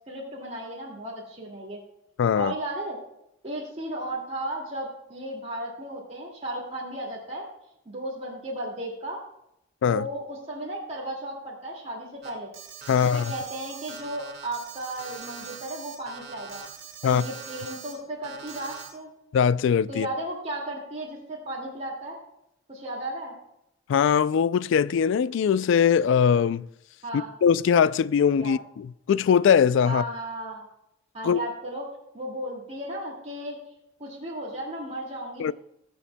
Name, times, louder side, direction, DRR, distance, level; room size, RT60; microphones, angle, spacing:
voice 1, 0.1-1.8 2.3-3.0 3.4-7.5 7.9-9.2 9.9-12.5 12.9-16.6 17.0-19.1 19.9-22.2 22.7-23.3 27.0-27.3 28.4-28.5 29.8-30.6 31.1-31.9 32.1-33.6 34.0-35.5, right 1 dB, 35° right, 2.2 m, -35 dB
voice 2, 2.2-2.5 9.8-10.0 12.9-13.3 17.0-17.2 19.3-20.1 23.9-26.7 27.4-30.0 31.2-31.4 35.4-35.5, left 7 dB, 70° left, 0.3 m, -21 dB
Alarm, 12.2-17.9 18.2-18.9, right 6 dB, 55° right, 2.0 m, -42 dB
20.5 x 7.0 x 2.2 m
head